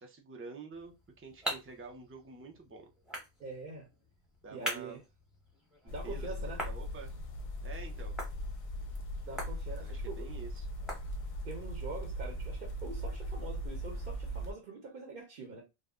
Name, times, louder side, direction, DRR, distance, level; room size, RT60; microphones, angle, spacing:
voice 1, 0.0-2.9 4.4-5.0 5.8-6.3 6.6-7.1 7.6-8.1 9.8-10.7, right 4 dB, 20° right, 0.3 m, -48 dB
sound 1, 0.7-11.6, equal, ahead, 0.8 m, -45 dB
voice 2, 3.4-3.9 4.5-5.0 5.9-6.6 9.3-10.3 11.4-15.6, right 3 dB, 60° right, 0.8 m, -44 dB
sound 2, 5.9-14.5, equal, 50° left, 0.4 m, -39 dB
2.4 x 2.1 x 3.5 m
omnidirectional pair, 1.1 m